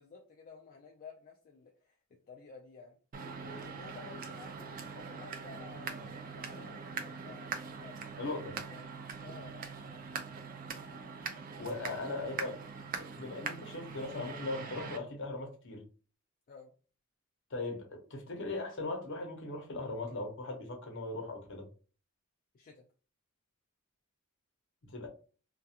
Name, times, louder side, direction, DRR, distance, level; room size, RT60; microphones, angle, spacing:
voice 1, 0.0-2.0 2.3-3.0 3.4-9.7 12.0-12.3 16.5-16.7 22.5-22.9, left 4 dB, 40° left, 0.3 m, -53 dB
sound 1, 3.1-15.0, right 5 dB, 40° right, 0.4 m, -42 dB
voice 2, 8.2-8.6 11.6-12.5 12.9-15.8 17.5-21.7 24.8-25.1, left 2 dB, 60° left, 0.7 m, -39 dB
2.4 x 2.2 x 2.7 m
head